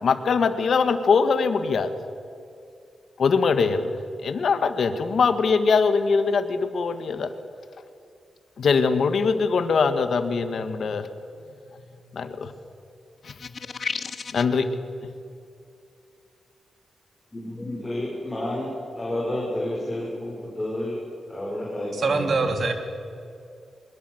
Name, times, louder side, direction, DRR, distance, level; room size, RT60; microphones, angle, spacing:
voice 1, 0.0-1.9 3.2-3.9 4.2-7.3 8.6-11.1 12.1-12.5 13.2-13.3 14.3-14.7, left 5 dB, 65° left, 9 dB, 1.7 m, -22 dB
sound 1, 13.2-14.6, left 5 dB, 45° left, 1.0 m, -33 dB
voice 2, 17.3-21.0 21.3-22.6, left 1 dB, 15° left, -3 dB, 5.2 m, -30 dB
voice 3, 21.9-22.7, right 3 dB, 50° right, 6 dB, 2.9 m, -23 dB
22.0 x 22.0 x 8.0 m, 2.5 s
wide cardioid pair, 120°, 0 cm